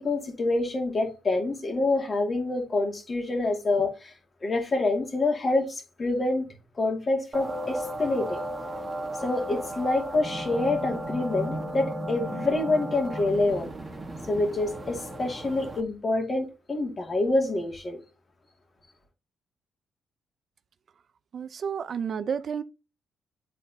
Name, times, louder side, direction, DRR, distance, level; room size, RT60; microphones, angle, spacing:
voice 1, 0.0-4.1 4.4-6.5 6.8-8.4 9.2-13.7 14.3-18.0, left 2 dB, 35° left, 2.2 m, -27 dB
sound 1, 7.3-15.8, right 1 dB, 25° right, 1.2 m, -35 dB
voice 2, 21.3-22.6, right 7 dB, 50° right, 0.5 m, -31 dB
10.5 x 4.1 x 2.8 m
cardioid pair, 90°, 0 cm